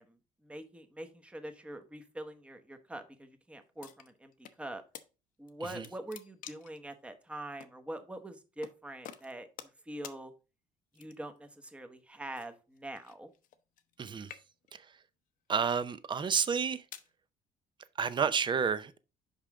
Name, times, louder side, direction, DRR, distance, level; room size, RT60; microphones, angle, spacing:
voice 1, 0.0-4.8 5.4-10.3 10.9-13.3, right 1 dB, 10° right, 1.0 m, -44 dB
sound 1, 3.8-4.6 4.9-5.1 5.5-6.8 7.6-7.7 8.6-8.8 9.0-9.8 10.0-10.2 10.9-11.4 12.3-14.0 14.2-14.8 15.5-15.7 16.4-17.1, left 10 dB, 70° left, 0.7 m, -49 dB
voice 2, 14.0-14.3 14.7-14.8 15.5-16.8 18.0-19.0, right 6 dB, 35° right, 0.6 m, -30 dB
5.5 x 5.1 x 4.7 m
cardioid pair, 110°, 14 cm